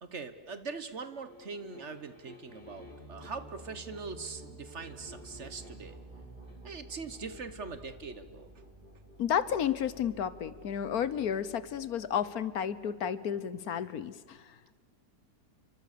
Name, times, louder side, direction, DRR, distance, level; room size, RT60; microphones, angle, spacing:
voice 1, 0.0-6.0 6.6-8.5, right 4 dB, 45° right, 11 dB, 1.4 m, -42 dB
sound 1, 1.2-3.6 4.8-5.9 6.4-6.6, left 1 dB, 10° left, 4.8 m, -54 dB
sound 2, 2.4-13.1, right 1 dB, 30° right, 3.5 m, -51 dB
voice 2, 9.2-14.7, left 8 dB, 65° left, 16 dB, 1.4 m, -32 dB
30.0 x 24.0 x 6.8 m, 1.5 s
omnidirectional pair, 1.7 m